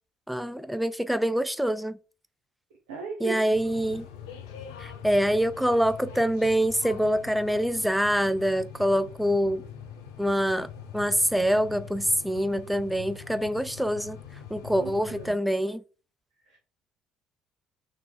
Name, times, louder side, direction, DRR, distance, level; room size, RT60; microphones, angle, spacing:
voice 1, 0.3-2.0 3.2-4.1 4.8-9.6 10.2-14.2 14.5-15.8, equal, ahead, 0.4 m, -25 dB
voice 2, 2.9-3.4 14.8-15.4 16.4-16.6, right 4 dB, 75° right, 0.7 m, -37 dB
sound 1, 3.5-15.3, left 8 dB, 75° left, 0.5 m, -43 dB
4.0 x 2.8 x 3.7 m
figure-of-eight pair, 50°, 2 cm